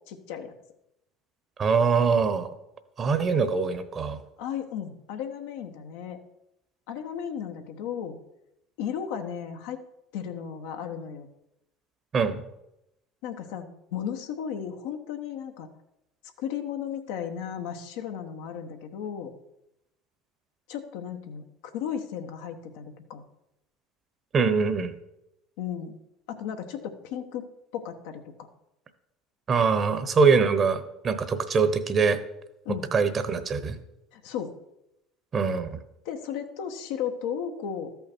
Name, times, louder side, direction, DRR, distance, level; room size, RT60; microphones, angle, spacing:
voice 1, 0.1-0.5 4.4-6.2 6.9-8.2 8.8-9.8 10.1-11.3 13.2-15.7 16.4-19.3 20.7-21.4 21.7-23.2 25.6-26.0 26.3-28.2 32.6-32.9 34.1-34.5 36.0-37.9, left 8 dB, 75° left, 5 dB, 1.1 m, -35 dB
voice 2, 1.6-2.5 3.0-4.2 12.1-12.4 24.3-24.9 29.5-32.2 32.9-33.8 35.3-35.8, right 5 dB, 40° right, 11 dB, 1.0 m, -23 dB
13.0 x 5.7 x 4.5 m, 0.86 s
hypercardioid pair, 85°, 0 cm